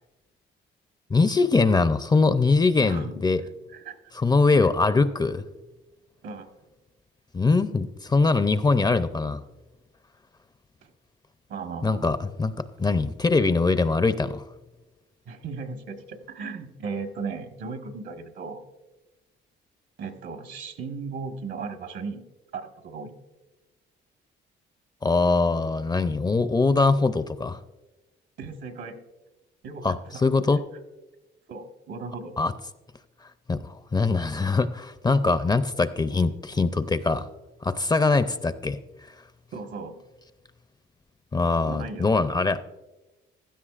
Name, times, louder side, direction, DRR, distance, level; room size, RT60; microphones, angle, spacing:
voice 1, 1.1-3.4 4.1-5.4 7.3-9.4 11.8-14.4 25.0-27.6 29.8-30.6 32.4-32.5 33.5-37.3 37.6-38.8 41.3-42.6, left 3 dB, 20° left, 12 dB, 0.5 m, -22 dB
voice 2, 2.8-3.3 3.7-4.0 4.6-4.7 6.2-6.5 11.5-12.1 15.3-18.6 20.0-22.2 22.5-23.1 28.4-28.9 29.6-30.2 31.5-32.4 39.5-40.0 41.6-42.2, right 4 dB, 70° right, 6 dB, 1.4 m, -36 dB
16.0 x 12.5 x 2.4 m, 1.1 s
cardioid pair, 90°, 20 cm